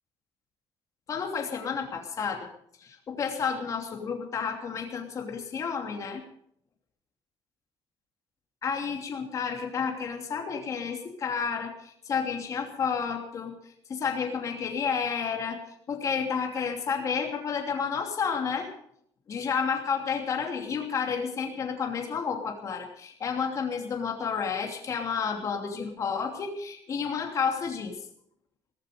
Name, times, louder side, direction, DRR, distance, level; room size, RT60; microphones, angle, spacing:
voice 1, 1.1-2.5 2.8-6.2 8.6-13.6 13.9-15.6 15.9-18.7 19.3-28.0, left 6 dB, 35° left, 3 dB, 2.8 m, -31 dB
18.0 x 14.5 x 5.1 m, 0.69 s
cardioid pair, 150°, 9 cm